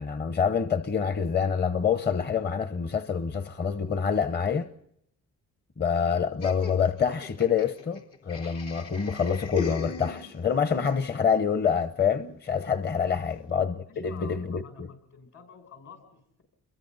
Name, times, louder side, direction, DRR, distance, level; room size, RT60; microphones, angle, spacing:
voice 1, 0.0-4.7 5.8-14.9, left 6 dB, 35° left, 0.9 m, -26 dB
Laughter, 6.4-10.7, left 6 dB, 80° left, 3.3 m, -38 dB
voice 2, 13.1-13.5 13.9-16.4, left 6 dB, 65° left, 7.2 m, -49 dB
29.0 x 22.5 x 4.1 m
cardioid pair, 90°, 30 cm